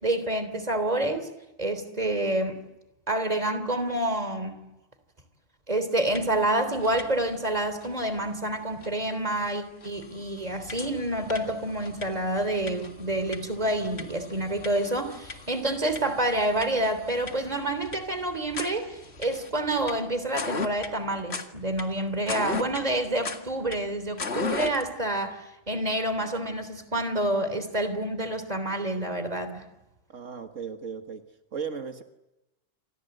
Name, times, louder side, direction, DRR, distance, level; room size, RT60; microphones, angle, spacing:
voice 1, 0.0-1.3 1.6-2.6 3.1-4.6 5.7-29.6, right 1 dB, 30° right, 10 dB, 3.4 m, -28 dB
sound 1, 6.1-6.5 6.7-7.4 7.8-7.9 8.8-8.9 9.4-9.5 9.8-24.9, left 3 dB, 55° left, 2.2 m, -38 dB
voice 2, 30.1-31.2 31.5-32.0, right 6 dB, 80° right, 6 dB, 2.0 m, -36 dB
28.5 x 26.0 x 8.0 m, 0.98 s
omnidirectional pair, 1.3 m